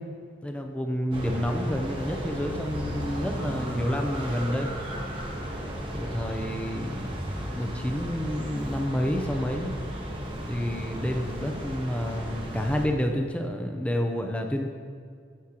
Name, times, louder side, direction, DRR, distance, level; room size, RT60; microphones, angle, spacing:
voice 1, 0.4-4.7 5.7-7.2 7.5-9.7 10.4-14.7, equal, 5° left, 3 dB, 0.4 m, -29 dB
sound 1, 1.1-12.9, equal, 25° right, 0.8 m, -34 dB
9.5 x 6.2 x 2.9 m, 2.2 s
head